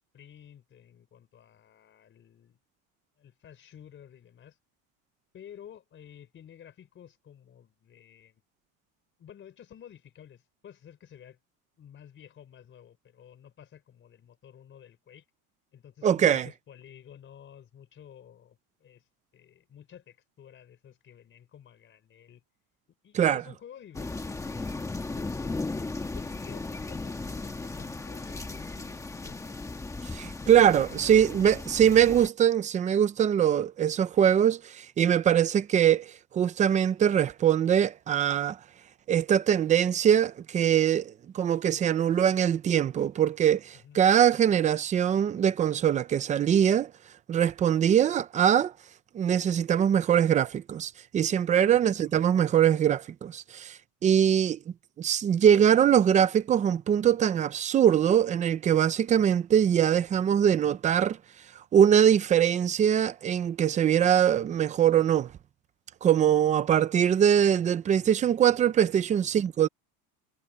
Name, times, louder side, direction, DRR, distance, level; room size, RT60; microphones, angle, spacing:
voice 1, 0.1-2.6 3.2-4.6 5.3-8.4 9.2-11.4 11.8-15.3 15.7-19.1 19.3-22.4 23.0-29.6 30.9-31.4 43.8-44.0 51.6-52.1 66.2-66.6 69.3-69.4, left 9 dB, 25° left, 4.2 m, -52 dB
voice 2, 16.0-16.5 23.1-23.4 30.1-38.6 39.1-46.9 47.3-48.7 49.1-54.6 55.0-61.2 61.7-65.3 66.0-69.7, right 9 dB, 20° right, 0.4 m, -23 dB
sound 1, 23.9-32.3, left 3 dB, 5° left, 1.2 m, -36 dB
cardioid pair, 170°, 43 cm